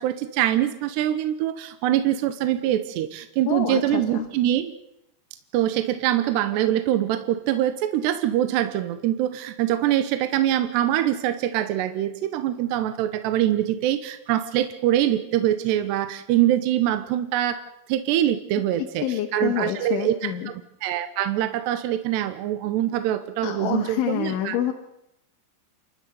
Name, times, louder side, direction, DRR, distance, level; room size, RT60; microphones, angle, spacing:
voice 1, 0.0-4.7 5.5-24.6, right 12 dB, 75° right, 10 dB, 3.0 m, -24 dB
voice 2, 3.5-4.3 18.8-20.5 23.4-24.7, left 10 dB, 90° left, 3 dB, 4.2 m, -27 dB
28.5 x 13.5 x 9.3 m, 0.80 s
omnidirectional pair, 5.3 m